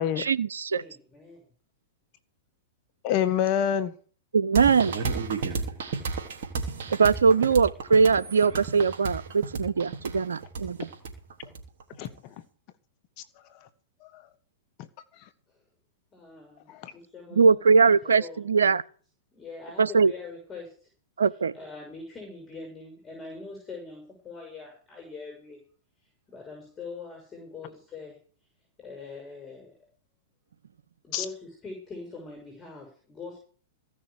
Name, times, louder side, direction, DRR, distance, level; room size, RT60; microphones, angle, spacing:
voice 1, 0.2-0.8 4.3-5.0 6.9-10.9 17.3-18.8 19.8-20.1 21.2-21.5, right 5 dB, 85° right, 0.8 m, -21 dB
voice 2, 0.8-1.5 15.5-15.6 16.1-18.4 19.3-20.9 21.5-25.6 26.3-28.2 28.8-29.7 31.0-33.4, left 3 dB, 20° left, 6.3 m, -43 dB
voice 3, 3.0-3.9 12.0-12.3 14.1-14.2 14.8-14.9 16.7-16.9 31.1-31.2, left 9 dB, 45° left, 1.5 m, -27 dB
sound 1, 4.5-12.1, right 4 dB, 65° right, 3.3 m, -32 dB
16.0 x 6.7 x 8.5 m
hypercardioid pair, 115°, 0 cm